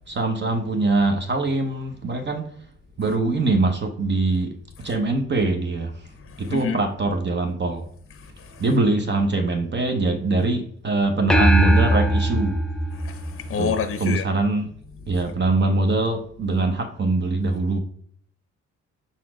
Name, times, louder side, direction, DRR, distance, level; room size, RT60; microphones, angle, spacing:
voice 1, 0.1-2.5 3.0-6.1 6.4-7.9 8.6-12.6 13.6-14.7 15.1-17.8, right 2 dB, 35° right, 0.8 m, -23 dB
sound 1, 11.3-13.9, right 1 dB, ahead, 0.5 m, -20 dB
voice 2, 13.0-14.2, left 6 dB, 45° left, 0.7 m, -27 dB
5.0 x 4.1 x 4.8 m
cardioid pair, 90°, 30 cm